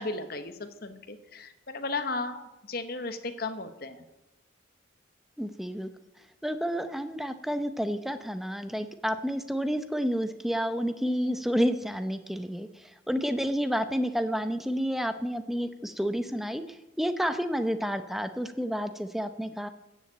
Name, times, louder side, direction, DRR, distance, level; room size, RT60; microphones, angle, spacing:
voice 1, 0.0-4.0 11.1-11.4, left 3 dB, 50° left, 8 dB, 1.1 m, -35 dB
voice 2, 5.4-5.9 6.4-19.7, equal, ahead, 9 dB, 0.7 m, -30 dB
15.5 x 7.3 x 8.5 m, 1.0 s
head